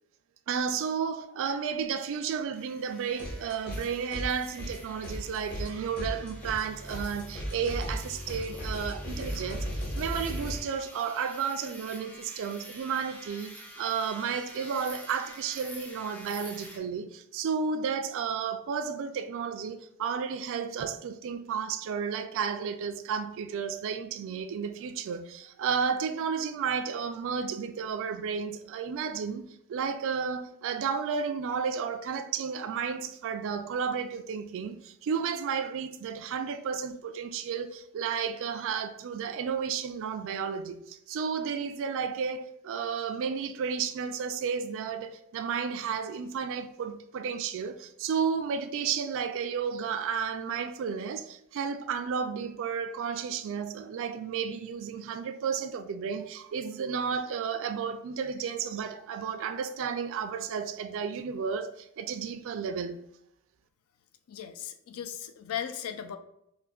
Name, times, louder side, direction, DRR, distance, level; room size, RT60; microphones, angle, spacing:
voice 1, 0.5-9.7 9.9-63.0, right 6 dB, 60° right, 0.3 m, -32 dB
sound 1, 2.5-16.8, equal, 5° left, 0.4 m, -49 dB
sound 2, 3.2-3.8 4.1-10.6, equal, 45° left, 1.2 m, -36 dB
voice 2, 64.3-66.2, left 9 dB, 70° left, 0.4 m, -37 dB
4.7 x 2.5 x 2.3 m
head